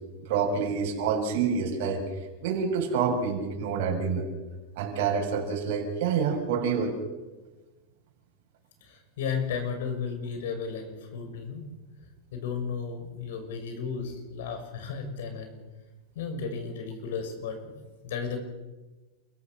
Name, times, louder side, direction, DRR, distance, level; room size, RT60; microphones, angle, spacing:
voice 1, 0.2-2.0 2.4-4.3 4.8-6.9, right 6 dB, 60° right, 0 dB, 6.7 m, -27 dB
voice 2, 8.8-11.6 12.3-15.5 16.1-17.6 18.0-18.4, left 6 dB, 75° left, 6 dB, 6.4 m, -34 dB
28.5 x 15.5 x 6.7 m, 1.2 s
supercardioid pair, 135°, 0 cm